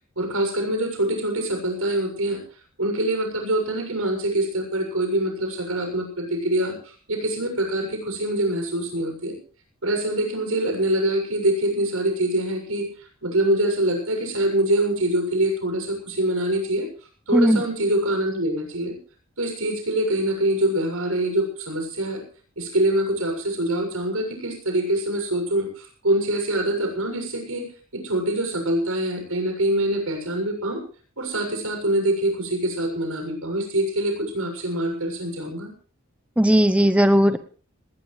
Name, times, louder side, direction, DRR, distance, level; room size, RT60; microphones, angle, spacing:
voice 1, 0.2-2.4 2.8-6.8 7.1-9.4 9.8-12.9 13.2-16.9 17.3-19.0 19.4-22.2 22.6-30.8 31.2-35.7, right 1 dB, 80° right, 4 dB, 7.0 m, -24 dB
voice 2, 17.3-17.6 36.4-37.4, equal, 5° right, 10 dB, 0.8 m, -17 dB
19.5 x 19.0 x 3.3 m, 0.40 s
head